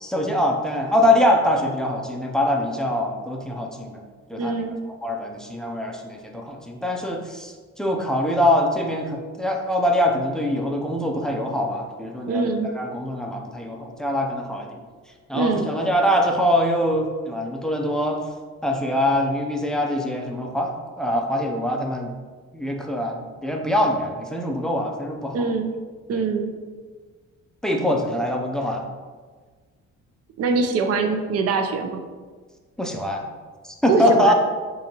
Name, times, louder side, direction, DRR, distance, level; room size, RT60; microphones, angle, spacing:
voice 1, 0.0-4.0 4.3-4.5 5.0-14.8 15.3-18.2 18.6-22.1 22.5-25.4 27.6-28.8 32.8-33.2 33.6-34.3, left 1 dB, ahead, 1 dB, 0.4 m, -23 dB
voice 2, 4.4-4.7 12.2-12.7 15.3-15.7 25.3-25.8 26.1-26.5 30.4-32.0 33.9-34.3, right 4 dB, 55° right, 6 dB, 0.5 m, -23 dB
3.8 x 2.6 x 2.9 m, 1.5 s
cardioid pair, 90°, 30 cm